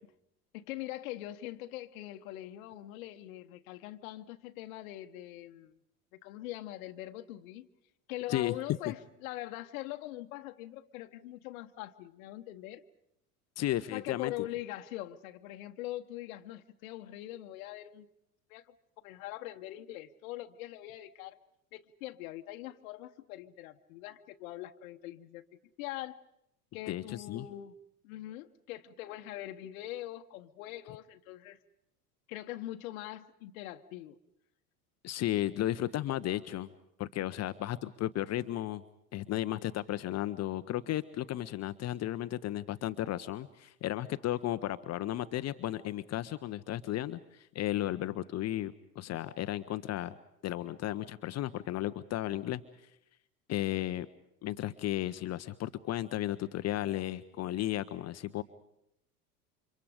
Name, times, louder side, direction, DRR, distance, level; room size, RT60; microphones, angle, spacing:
voice 1, 0.5-5.7 6.1-7.7 8.1-12.8 13.9-18.1 18.5-18.7 19.0-21.4 21.7-26.2 26.7-27.7 28.0-31.6 32.3-34.2, left 15 dB, 60° left, 7 dB, 1.2 m, -42 dB
voice 2, 13.6-14.5 26.9-27.5 35.0-36.7 37.0-38.8 39.1-50.1 50.4-52.6 53.5-54.1 54.4-58.4, left 13 dB, 35° left, 13 dB, 0.9 m, -34 dB
30.0 x 26.0 x 5.1 m, 0.81 s
figure-of-eight pair, 75°, 46 cm